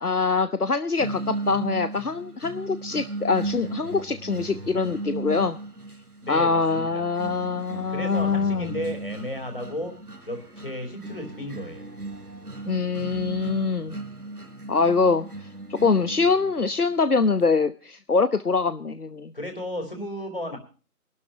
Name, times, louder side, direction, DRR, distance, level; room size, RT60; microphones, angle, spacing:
voice 1, 0.0-5.6 6.3-8.7 12.7-14.0 14.7-15.2 15.7-19.3, left 4 dB, 70° left, 12 dB, 1.0 m, -24 dB
sound 1, 1.0-16.9, right 2 dB, 75° right, 4.2 m, -37 dB
voice 2, 6.2-7.1 7.9-9.9 10.3-11.9 19.3-20.6, left 1 dB, 35° left, 5 dB, 3.8 m, -33 dB
23.0 x 12.5 x 2.8 m, 0.36 s
figure-of-eight pair, 180°, 46 cm